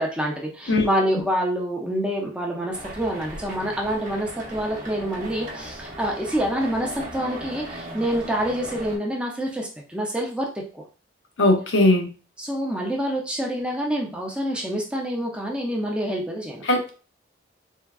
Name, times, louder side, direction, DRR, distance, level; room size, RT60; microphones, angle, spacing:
voice 1, 0.0-10.6 12.4-16.6, equal, 5° right, -1 dB, 0.4 m, -27 dB
sound 1, 2.7-9.0, right 1 dB, 45° right, 0.7 m, -37 dB
voice 2, 11.4-12.1 16.7-16.9, left 2 dB, 80° left, 2 dB, 0.6 m, -19 dB
3.5 x 2.2 x 2.3 m, 0.37 s
head